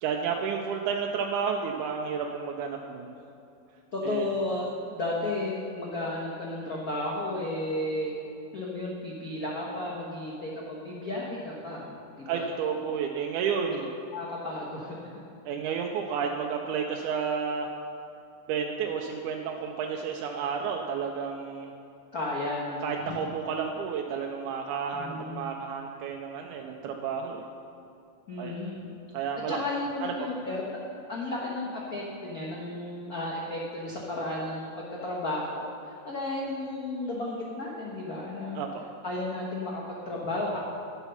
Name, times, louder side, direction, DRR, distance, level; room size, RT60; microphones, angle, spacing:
voice 1, 0.0-3.1 4.0-4.3 12.3-13.9 15.4-17.7 18.5-21.7 22.8-27.4 28.4-28.6 29.1-29.6 30.0-30.3 38.6-38.7, right 6 dB, 85° right, 2 dB, 2.1 m, -31 dB
voice 2, 3.9-4.7 4.9-8.1 8.5-11.8 12.1-12.5 14.1-15.0 22.1-23.2 24.9-25.5 28.3-28.9 29.5-30.6 31.1-38.6 39.0-40.6, left 2 dB, 80° left, -3 dB, 0.8 m, -33 dB
11.5 x 8.0 x 5.7 m, 2.6 s
omnidirectional pair, 3.5 m